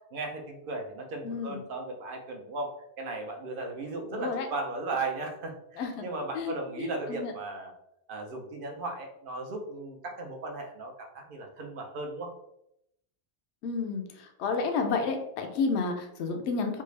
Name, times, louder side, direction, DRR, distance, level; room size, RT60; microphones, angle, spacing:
voice 1, 0.0-7.7 8.1-12.3, right 2 dB, 55° right, 2 dB, 0.7 m, -36 dB
voice 2, 1.2-1.6 4.1-4.5 5.8-6.0 6.3-7.3 13.6-14.0 14.4-16.8, left 4 dB, 75° left, 4 dB, 0.9 m, -31 dB
3.4 x 2.4 x 3.1 m, 0.79 s
omnidirectional pair, 1.2 m